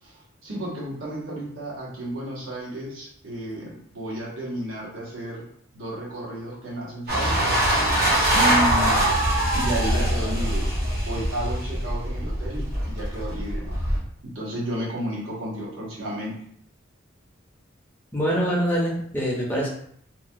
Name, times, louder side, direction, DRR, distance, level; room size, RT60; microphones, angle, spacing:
voice 1, 0.0-5.5 5.7-7.5 8.3-9.0 9.5-13.8 14.2-16.4, right 1 dB, 80° right, -4 dB, 1.0 m, -32 dB
sound 1, 7.1-14.0, right 1 dB, 50° right, 0.8 m, -23 dB
voice 2, 18.1-19.7, equal, 10° left, -4 dB, 0.5 m, -24 dB
3.0 x 2.2 x 2.6 m, 0.66 s
head